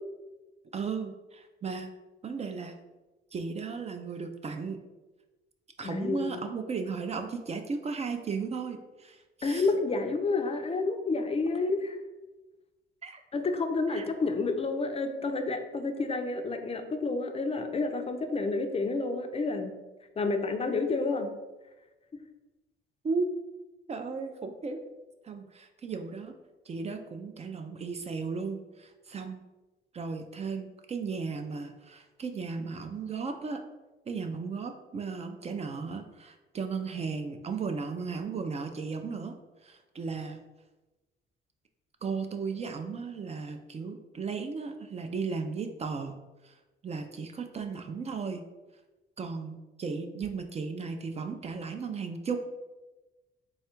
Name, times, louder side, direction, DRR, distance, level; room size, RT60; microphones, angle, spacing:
voice 1, 0.7-1.9 2.2-2.7 3.3-4.8 5.8-9.7 13.0-13.2 13.9-14.1 23.0-23.3 23.9-24.8 25.2-26.3 26.7-29.4 29.9-33.6 34.1-39.4 39.6-40.4 42.0-46.1 46.4-46.6 46.8-48.5 49.2-52.4, right 5 dB, 35° right, 6 dB, 0.3 m, -35 dB
voice 2, 5.8-6.4 9.4-12.0 13.3-19.7 20.2-21.3, left 3 dB, 30° left, 6 dB, 0.4 m, -29 dB
3.3 x 2.3 x 4.3 m, 1.1 s
cardioid pair, 90°, 20 cm